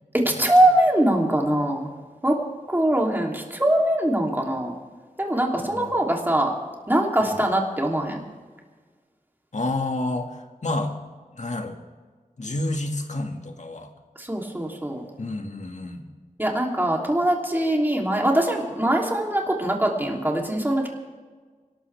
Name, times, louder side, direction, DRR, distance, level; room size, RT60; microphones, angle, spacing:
voice 1, 0.1-1.9 2.2-2.4 2.7-4.7 5.2-6.5 6.9-8.2 14.2-15.0 16.4-20.9, right 1 dB, 15° right, -1 dB, 3.1 m, -22 dB
voice 2, 9.5-10.3 10.6-10.9 11.3-11.8 12.4-13.9 15.2-16.0, left 2 dB, 60° left, 4 dB, 1.9 m, -29 dB
25.5 x 12.5 x 3.5 m, 1.4 s
wide cardioid pair, 60°, 14 cm